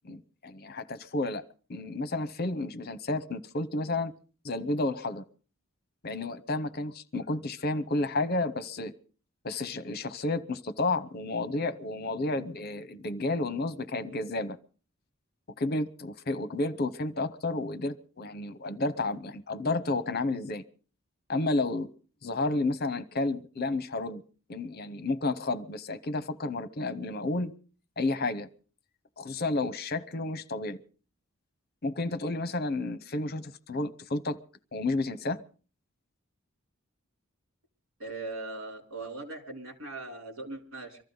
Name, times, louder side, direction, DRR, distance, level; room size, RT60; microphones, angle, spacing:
voice 1, 0.0-1.4 1.7-4.1 4.4-5.2 6.0-8.9 9.4-14.6 15.6-20.6 21.3-21.9 22.2-24.2 24.5-27.5 28.0-28.5 29.2-30.8 31.8-34.4 34.7-35.4, left 2 dB, 50° left, 14 dB, 0.9 m, -31 dB
voice 2, 38.0-41.0, right 3 dB, 85° right, 3 dB, 4.0 m, -39 dB
24.0 x 14.0 x 4.0 m, 0.39 s
head